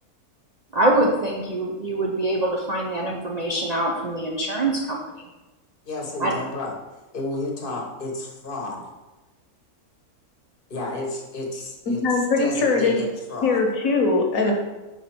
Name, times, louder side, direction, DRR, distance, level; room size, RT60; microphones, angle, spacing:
voice 1, 0.7-5.0 6.2-6.3, right 1 dB, 45° right, -2 dB, 0.5 m, -24 dB
voice 2, 5.9-6.7 7.1-8.8 10.7-13.7, left 2 dB, 40° left, 0 dB, 1.1 m, -32 dB
voice 3, 12.0-13.0 13.4-14.5, left 3 dB, 65° left, 1 dB, 1.4 m, -21 dB
5.2 x 5.1 x 4.4 m, 1.1 s
omnidirectional pair, 1.6 m